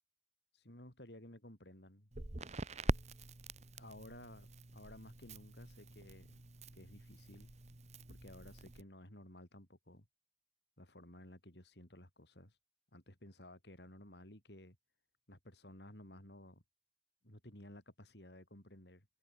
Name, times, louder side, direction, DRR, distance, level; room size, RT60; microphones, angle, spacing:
voice 1, 0.5-2.1 3.8-4.5 4.7-6.4 6.7-7.5 8.1-10.1 10.8-12.6 12.9-14.8 15.3-16.6 17.2-19.1, left 1 dB, 65° left, 6.2 m, -55 dB
Crackle, 2.1-8.8, right 2 dB, 40° right, 1.3 m, -44 dB
head